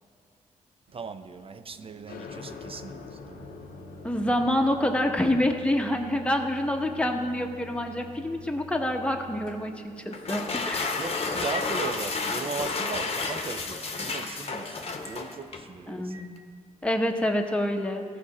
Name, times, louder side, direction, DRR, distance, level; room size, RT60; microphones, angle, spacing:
voice 1, 0.9-3.5 10.9-16.3, right 5 dB, 35° right, 10 dB, 0.5 m, -38 dB
Microwave oven, 0.9-17.4, right 2 dB, 65° right, 1.2 m, -50 dB
sound 1, 2.1-9.3, left 5 dB, 70° left, 0.7 m, -47 dB
voice 2, 4.0-10.9 15.9-16.4 16.8-18.0, left 1 dB, 5° left, 3 dB, 1.0 m, -27 dB
sound 2, 10.1-15.7, left 4 dB, 40° left, 0.9 m, -31 dB
14.5 x 5.0 x 4.2 m, 2.1 s
cardioid pair, 60°, 15 cm